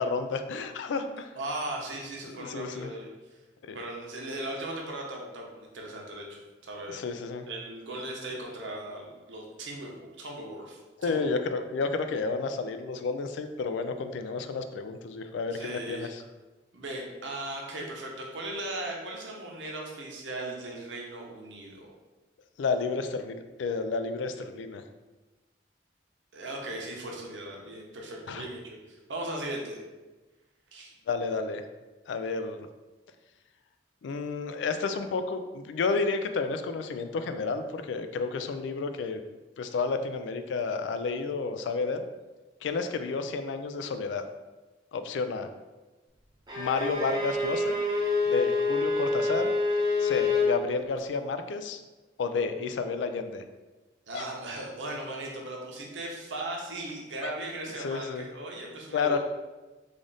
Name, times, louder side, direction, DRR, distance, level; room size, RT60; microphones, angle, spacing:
voice 1, 0.0-1.3 2.3-2.9 3.6-3.8 6.9-7.5 11.0-16.2 22.6-24.8 28.3-28.4 31.1-31.6 32.1-32.6 34.0-39.2 39.6-42.0 42.6-44.2 44.9-45.5 46.6-47.8 48.3-49.5 50.0-51.8 52.2-53.4 54.1-54.3 57.2-57.3 57.8-58.2 58.9-59.2, left 4 dB, 80° left, 8 dB, 0.3 m, -31 dB
voice 2, 1.4-3.1 3.7-7.0 7.5-11.3 15.5-16.1 16.7-21.9 26.3-29.8 30.7-30.9 54.1-59.2, right 1 dB, 85° right, -1 dB, 0.8 m, -38 dB
Bowed string instrument, 46.5-50.6, left 3 dB, 25° right, 0.6 m, -27 dB
3.4 x 2.5 x 3.9 m, 1.2 s
head